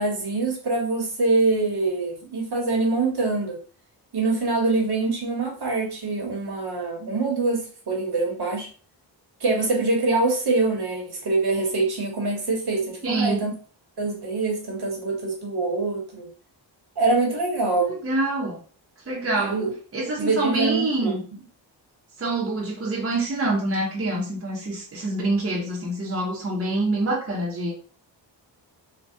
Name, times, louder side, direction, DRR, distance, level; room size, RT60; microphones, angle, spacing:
voice 1, 0.0-3.6 4.1-8.7 9.4-13.5 14.0-16.3 17.0-18.0 19.4-19.7 20.2-21.2, right 3 dB, 55° right, 0 dB, 1.1 m, -24 dB
voice 2, 13.0-13.4 17.9-18.6 19.1-19.6 19.9-21.2 22.2-27.7, right 2 dB, 30° right, -2 dB, 0.8 m, -26 dB
3.3 x 2.3 x 2.7 m, 0.41 s
wide cardioid pair, 100°, 46 cm